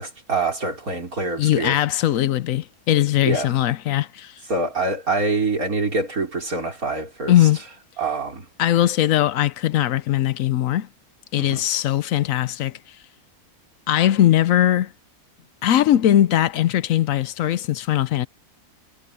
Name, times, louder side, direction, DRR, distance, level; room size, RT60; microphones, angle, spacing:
voice 1, 0.0-1.8 3.3-3.5 4.5-7.3 8.0-8.5 11.4-11.6, right 3 dB, 70° right, 5.2 m, -25 dB
voice 2, 1.4-4.3 7.3-7.6 8.6-10.9 11.3-12.7 13.9-14.9 15.6-18.3, left 12 dB, 70° left, 1.0 m, -20 dB
omnidirectional pair, 1.6 m